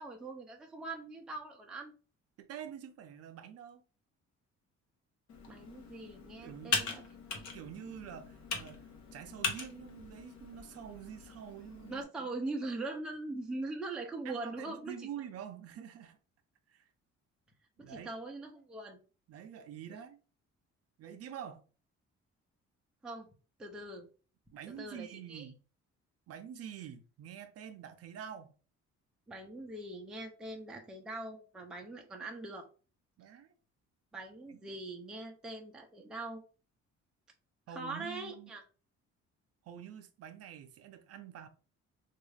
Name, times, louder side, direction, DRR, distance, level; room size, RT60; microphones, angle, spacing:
voice 1, 0.0-1.9 5.5-7.0 7.3-7.4 11.9-15.1 17.8-19.0 19.9-20.0 23.0-23.3 23.6-24.1 24.7-25.5 29.3-32.7 34.1-36.4 37.7-38.6, right 2 dB, 5° right, 0.4 m, -42 dB
voice 2, 2.4-3.8 6.4-6.8 7.5-12.3 14.2-16.2 16.7-16.8 17.8-18.1 19.3-20.2 21.0-21.6 24.5-25.6 26.3-28.5 33.2-33.5 34.5-34.6 37.7-38.5 39.6-41.5, right 9 dB, 55° right, 0.5 m, -47 dB
Computer keyboard, 5.3-12.0, left 4 dB, 70° left, 0.9 m, -40 dB
3.6 x 2.4 x 3.1 m
cardioid pair, 180°, 29 cm